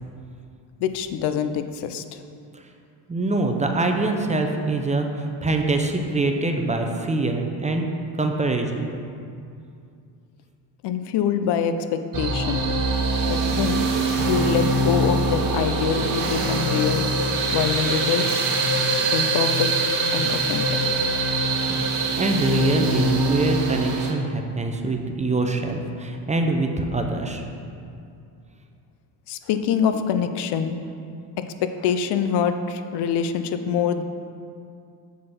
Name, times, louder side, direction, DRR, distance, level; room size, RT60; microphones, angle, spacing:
voice 1, 0.8-2.2 10.8-12.7 13.3-13.8 14.2-17.0 17.5-18.3 19.1-19.7 20.1-21.0 29.3-30.8 31.4-34.0, left 7 dB, 60° left, 9 dB, 0.6 m, -25 dB
voice 2, 3.1-7.9 8.2-8.9 21.7-21.9 22.2-27.4, right 2 dB, 15° right, 4 dB, 0.6 m, -24 dB
sound 1, 12.1-24.1, right 2 dB, 45° right, 1.2 m, -23 dB
7.5 x 4.1 x 5.9 m, 2.5 s
supercardioid pair, 85°, 46 cm